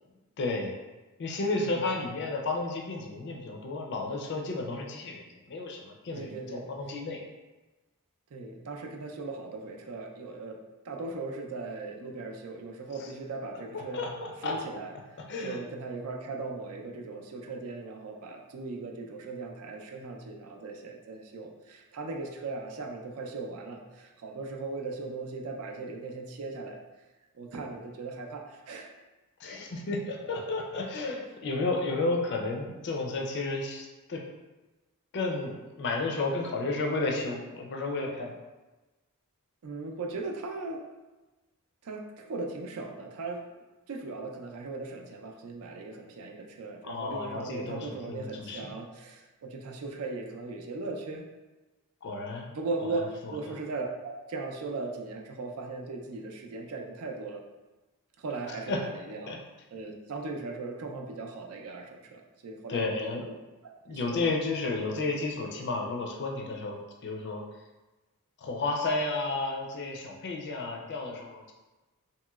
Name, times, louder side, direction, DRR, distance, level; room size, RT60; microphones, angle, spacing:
voice 1, 0.4-0.7 1.2-7.2 13.0-13.1 13.7-14.6 15.3-15.6 29.4-34.2 35.1-38.3 46.8-48.6 52.0-52.5 53.4-53.5 58.7-58.8 59.3-59.4 62.7-63.2 63.9-67.4 68.4-71.5, left 3 dB, 50° left, 0 dB, 0.4 m, -32 dB
voice 2, 6.1-6.7 8.3-10.6 10.8-14.1 14.4-26.8 27.3-28.9 39.6-40.8 41.8-43.4 43.9-51.2 52.5-57.4 58.2-59.4 59.7-63.3 63.9-64.3, right 3 dB, 70° right, 2 dB, 0.4 m, -38 dB
2.9 x 2.9 x 2.3 m, 1.2 s
head